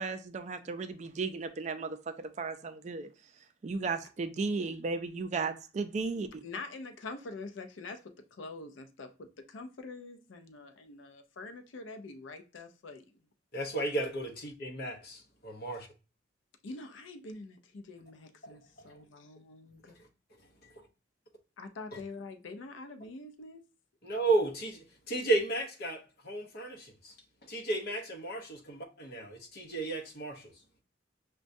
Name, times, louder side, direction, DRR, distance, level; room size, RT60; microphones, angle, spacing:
voice 1, 0.0-1.9 2.4-3.1 3.6-6.3, right 4 dB, 35° right, 0.4 m, -34 dB
voice 2, 6.4-8.0 8.3-13.1 16.6-20.0 21.6-23.6, left 3 dB, 75° left, 0.5 m, -45 dB
voice 3, 13.5-15.9 18.8-18.9 21.9-22.0 24.0-27.1 27.5-30.5, right 2 dB, 55° left, 0.8 m, -33 dB
6.1 x 2.2 x 2.6 m
head